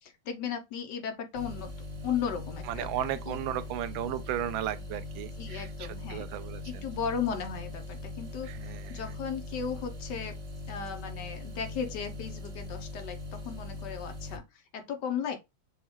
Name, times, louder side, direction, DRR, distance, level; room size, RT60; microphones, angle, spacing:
voice 1, 0.0-1.7 2.0-2.9 3.3-3.4 5.4-6.3 6.6-10.4 10.7-15.4, left 7 dB, 70° left, 1.3 m, -36 dB
sound 1, 1.3-14.4, left 2 dB, 40° right, 0.9 m, -41 dB
voice 2, 2.7-6.8 8.4-9.1, right 11 dB, 85° right, 1.3 m, -35 dB
6.4 x 2.3 x 3.0 m
omnidirectional pair, 2.1 m